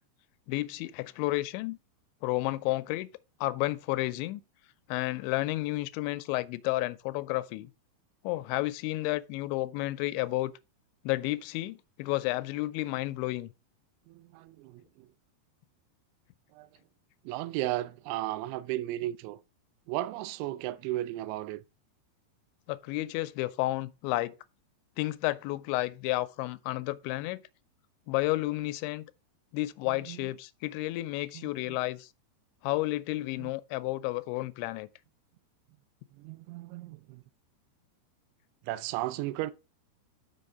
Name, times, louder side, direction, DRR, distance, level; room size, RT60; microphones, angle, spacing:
voice 1, 0.5-1.8 2.2-3.1 3.4-4.4 4.9-7.7 8.2-10.5 11.0-13.5 22.7-24.4 25.0-27.4 28.1-29.1 29.5-32.1 32.6-34.9, left 18 dB, 85° left, 2.8 m, -31 dB
voice 2, 14.1-15.1 16.5-16.7 17.2-19.4 19.9-21.6 29.9-30.3 31.3-31.8 33.4-33.5 36.1-37.2 38.6-39.5, right 15 dB, 85° right, 2.9 m, -35 dB
6.5 x 5.8 x 5.3 m
omnidirectional pair, 5.2 m